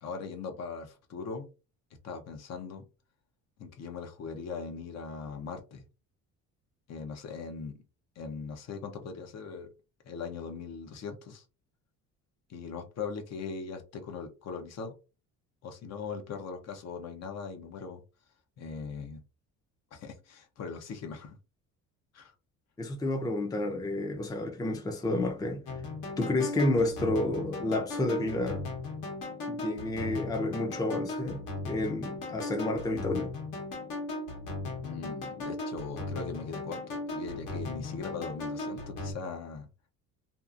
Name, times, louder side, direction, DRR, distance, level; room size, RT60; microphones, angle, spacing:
voice 1, 0.0-1.5 2.0-2.8 3.6-5.8 6.9-7.7 8.2-9.7 10.0-11.4 12.5-14.9 15.6-18.0 18.6-19.2 19.9-21.4 22.1-22.3 34.8-39.7, left 5 dB, 50° left, 0.7 m, -40 dB
voice 2, 22.8-25.6 26.2-28.6 29.5-33.3, left 2 dB, 10° left, 0.5 m, -30 dB
sound 1, 25.7-39.1, left 2 dB, 65° left, 1.1 m, -37 dB
2.7 x 2.4 x 2.4 m
cardioid pair, 110°, 33 cm